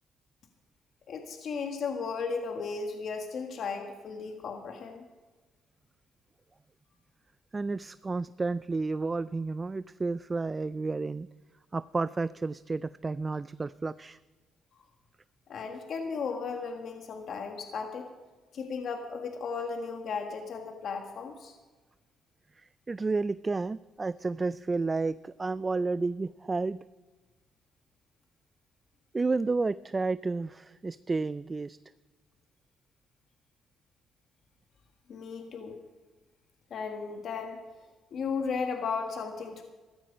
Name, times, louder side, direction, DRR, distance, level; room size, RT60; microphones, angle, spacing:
voice 1, 1.1-5.0 15.5-18.1 18.5-21.5 35.1-35.8 36.7-37.6 38.1-39.6, left 5 dB, 60° left, 4 dB, 1.6 m, -35 dB
voice 2, 7.5-11.3 11.7-14.2 22.6-26.8 29.1-31.8, right 3 dB, 25° right, 16 dB, 0.3 m, -31 dB
15.0 x 13.0 x 5.2 m, 1.3 s
cardioid pair, 85°, 0 cm